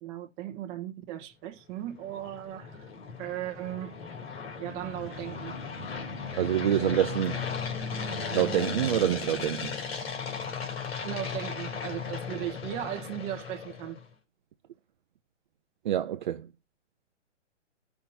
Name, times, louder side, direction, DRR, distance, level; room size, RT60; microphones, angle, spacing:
voice 1, 0.0-2.9 3.2-3.9 4.6-5.6 11.0-14.0, right 13 dB, 20° right, 1.0 m, -37 dB
sound 1, 1.7-14.0, left 5 dB, 55° left, 2.9 m, -36 dB
voice 2, 6.4-7.4 8.3-9.8 15.8-16.5, right 11 dB, 40° right, 0.6 m, -26 dB
16.5 x 5.7 x 2.7 m
hypercardioid pair, 150°, 37 cm